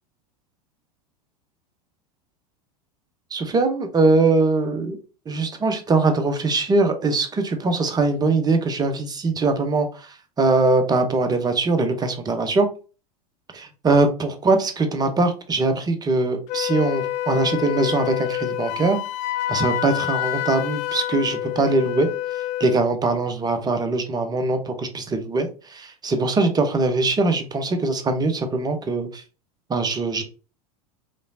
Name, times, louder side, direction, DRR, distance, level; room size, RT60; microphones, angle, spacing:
voice 1, 3.3-5.0 5.3-12.7 13.5-19.0 19.5-22.1 22.6-29.2 29.7-30.2, right 3 dB, 20° right, 7 dB, 0.9 m, -22 dB
Wind instrument woodwind instrument, 16.5-22.8, left 13 dB, 40° left, 0.4 m, -27 dB
5.2 x 3.1 x 2.7 m, 0.35 s
hypercardioid pair, 90°, 20 cm